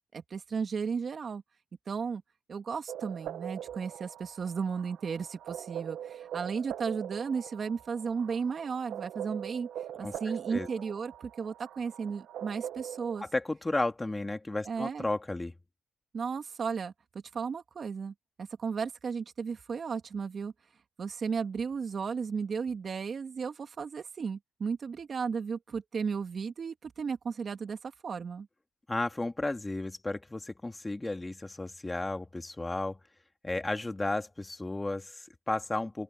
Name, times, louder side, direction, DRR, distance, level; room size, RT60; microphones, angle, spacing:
voice 1, 0.1-1.4 1.9-2.2 2.5-9.7 10.0-13.2 14.6-15.1 16.1-16.9 17.3-20.5 21.0-28.5, right 5 dB, 45° right, 2.5 m, -34 dB
sound 1, 2.9-13.2, right 10 dB, 75° right, 1.3 m, -42 dB
voice 2, 13.3-15.5 28.9-33.0 33.4-36.0, left 2 dB, 15° left, 2.4 m, -33 dB
open air
cardioid pair, 90°, 0 cm